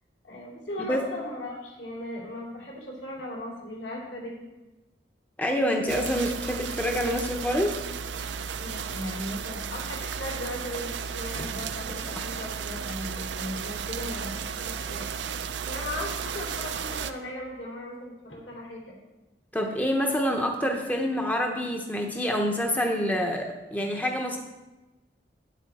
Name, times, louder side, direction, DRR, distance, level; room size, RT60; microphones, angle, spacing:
voice 1, 0.2-4.5 8.6-18.9, left 1 dB, 75° left, -2 dB, 2.9 m, -37 dB
voice 2, 5.4-7.8 19.5-24.4, equal, 10° left, 2 dB, 0.7 m, -27 dB
sound 1, 5.9-17.1, right 6 dB, 80° right, 0.5 m, -34 dB
9.2 x 8.3 x 4.2 m, 1.1 s
head